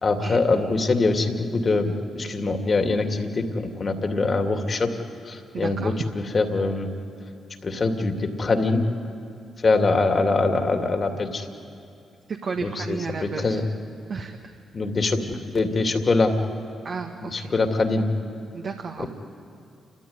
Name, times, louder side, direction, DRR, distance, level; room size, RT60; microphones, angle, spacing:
voice 1, 0.0-4.9 5.3-6.9 7.6-8.9 9.6-11.5 12.6-13.6 14.7-16.4 17.2-18.1 19.0-19.1, left 3 dB, 45° left, 5 dB, 2.6 m, -23 dB
voice 2, 5.5-5.9 12.4-13.6 14.1-14.5 16.8-17.5 18.5-19.1, right 5 dB, 55° right, 3 dB, 1.6 m, -33 dB
30.0 x 14.0 x 9.7 m, 2.5 s
hypercardioid pair, 45°, 0 cm